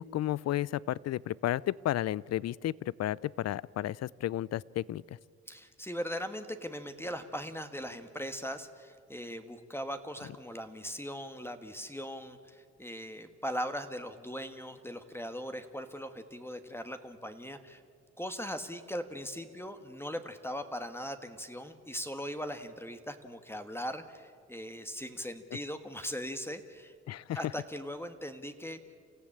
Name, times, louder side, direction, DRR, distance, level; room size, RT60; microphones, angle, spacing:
voice 1, 0.0-5.0 27.1-27.4, left 13 dB, 60° left, 23 dB, 0.5 m, -32 dB
voice 2, 5.5-17.8 18.2-26.9 27.3-28.8, equal, 10° left, 8 dB, 1.5 m, -39 dB
28.5 x 15.0 x 8.8 m, 2.2 s
cardioid pair, 90°, 30 cm